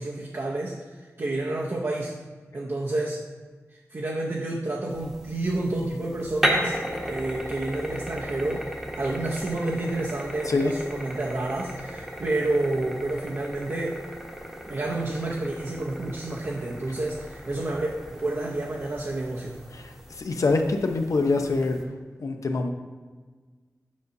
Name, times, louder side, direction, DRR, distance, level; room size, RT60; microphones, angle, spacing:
voice 1, 0.0-2.2 2.5-3.2 3.9-6.8 7.1-8.7 9.0-14.0 14.7-19.6, right 2 dB, 50° right, -3 dB, 0.7 m, -29 dB
sound 1, 4.9-21.8, equal, 5° right, 1.0 m, -35 dB
voice 2, 19.7-21.8 22.2-22.7, left 3 dB, 75° left, 5 dB, 0.6 m, -25 dB
8.3 x 5.3 x 2.6 m, 1.4 s
wide cardioid pair, 80°, 6 cm